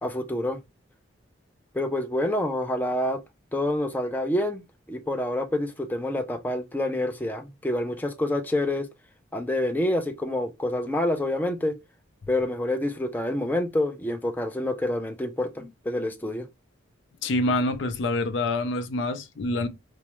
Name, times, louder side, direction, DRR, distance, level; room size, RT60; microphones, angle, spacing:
voice 1, 0.0-0.6 1.7-3.2 3.5-4.6 4.9-8.9 9.3-11.8 12.3-16.5, left 1 dB, 10° left, 0.4 m, -27 dB
voice 2, 17.2-19.7, left 2 dB, 65° left, 0.5 m, -26 dB
4.4 x 2.0 x 2.9 m
head